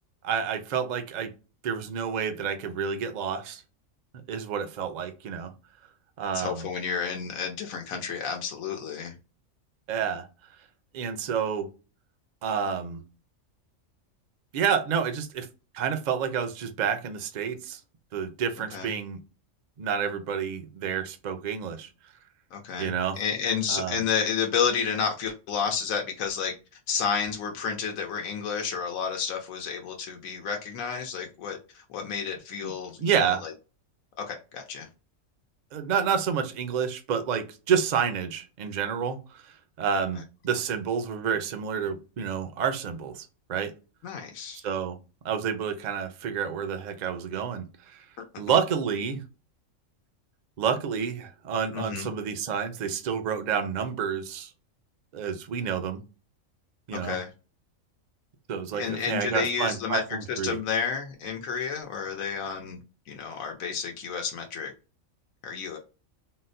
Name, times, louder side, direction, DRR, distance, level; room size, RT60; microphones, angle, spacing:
voice 1, 0.2-1.3 1.6-3.6 4.3-5.5 6.2-6.7 9.9-10.3 10.9-11.7 12.4-13.0 14.5-15.5 15.7-17.8 18.1-19.2 19.8-21.9 22.8-23.2 23.7-24.0 32.6-32.7 33.0-33.4 35.7-39.4 39.8-43.7 44.6-45.0 45.2-48.0 48.4-49.2 50.6-54.5 55.1-56.0 56.9-57.2 58.5-60.6, right 7 dB, 65° right, 0.4 m, -29 dB
voice 2, 6.3-9.1 18.7-18.9 22.5-26.5 26.9-33.5 34.2-34.9 40.2-40.3 44.0-44.6 51.7-52.1 56.9-57.3 58.7-60.0 60.3-62.8 63.1-64.7 65.4-65.8, left 6 dB, 85° left, 1.1 m, -31 dB
3.8 x 2.1 x 2.6 m
omnidirectional pair, 1.4 m